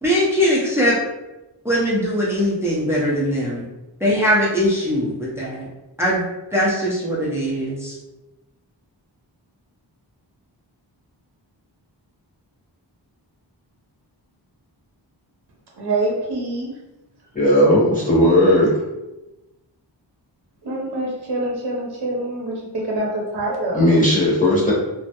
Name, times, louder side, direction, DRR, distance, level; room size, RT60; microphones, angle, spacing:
voice 1, 0.0-1.0 1.6-3.6 4.0-5.7 6.0-6.2 6.5-8.0, equal, 5° right, -6 dB, 0.6 m, -20 dB
voice 2, 15.8-16.7 20.6-24.0, right 2 dB, 60° right, -3 dB, 0.7 m, -25 dB
voice 3, 17.3-18.7 23.7-24.7, left 1 dB, 20° left, -7 dB, 0.9 m, -16 dB
2.3 x 2.0 x 2.8 m, 0.99 s
wide cardioid pair, 45°, 45 cm